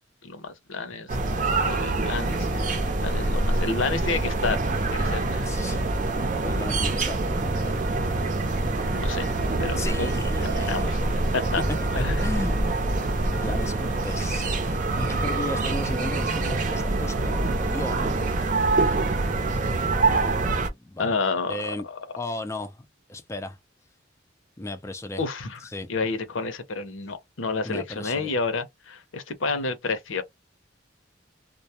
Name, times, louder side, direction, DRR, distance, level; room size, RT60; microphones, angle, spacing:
voice 1, 0.2-1.1 1.7-4.6 4.9-5.5 8.9-9.3 9.6-10.1 10.4-11.0 11.3-11.6 12.0-12.2 21.0-22.1 25.2-30.2, left 4 dB, 85° left, 0.7 m, -30 dB
sound 1, 1.1-20.7, right 2 dB, 40° right, 0.6 m, -25 dB
voice 2, 5.4-5.8 6.4-7.8 9.8-10.9 12.2-12.6 13.3-18.2 20.5-21.2 21.5-21.9 22.2-23.6 24.6-25.2 25.7-25.9 27.6-28.3, left 1 dB, 15° left, 0.4 m, -35 dB
2.2 x 2.0 x 2.8 m
head